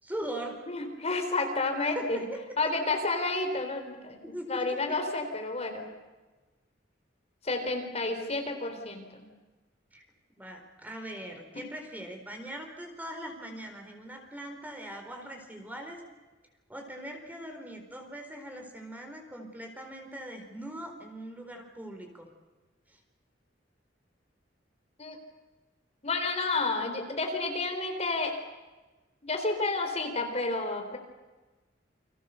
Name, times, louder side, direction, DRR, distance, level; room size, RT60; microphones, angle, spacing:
voice 1, 0.0-0.7 1.9-2.4 2.9-3.0 4.2-4.6 9.9-10.0 10.4-16.0 16.7-22.3 22.9-23.0, right 1 dB, 10° right, 3 dB, 4.4 m, -41 dB
voice 2, 0.7-2.3 2.6-4.2 4.5-5.9 7.4-9.3 25.0-25.2 26.0-28.4 29.2-31.0, left 3 dB, 35° left, 4 dB, 3.7 m, -30 dB
29.5 x 25.5 x 6.9 m, 1.2 s
head